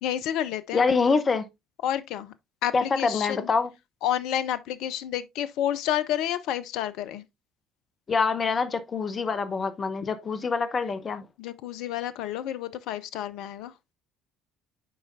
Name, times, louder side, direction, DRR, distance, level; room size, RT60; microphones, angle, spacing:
voice 1, 0.0-0.8 1.8-2.3 2.6-3.5 4.0-7.3 11.4-13.7, left 11 dB, 65° left, 0.5 m, -30 dB
voice 2, 0.7-1.5 2.7-3.7 8.1-11.3, left 4 dB, 35° left, 0.9 m, -25 dB
8.5 x 4.9 x 2.6 m
hypercardioid pair, 55°, 0 cm